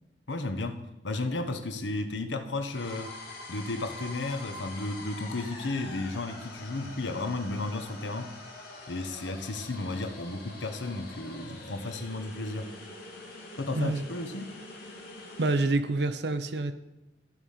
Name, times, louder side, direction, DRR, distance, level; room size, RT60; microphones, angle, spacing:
voice 1, 0.3-3.1 3.5-8.3 8.9-12.7 13.6-14.6, left 2 dB, 90° left, 1.0 m, -33 dB
sound 1, 2.6-15.8, left 2 dB, 60° left, 2.2 m, -45 dB
voice 2, 13.7-14.0 15.4-16.7, right 2 dB, 65° right, 0.7 m, -27 dB
14.0 x 5.0 x 5.5 m
head